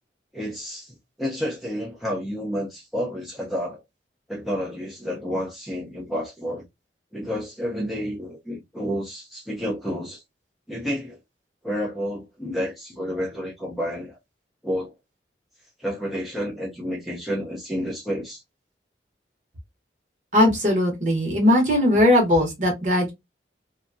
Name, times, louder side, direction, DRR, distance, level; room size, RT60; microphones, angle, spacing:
voice 1, 0.3-3.8 4.3-6.6 7.1-10.2 10.7-11.2 11.6-14.2 14.6-14.9 15.8-18.4, equal, ahead, 0.6 m, -30 dB
voice 2, 20.3-23.1, left 1 dB, 40° right, 1.0 m, -19 dB
2.8 x 2.3 x 2.5 m
head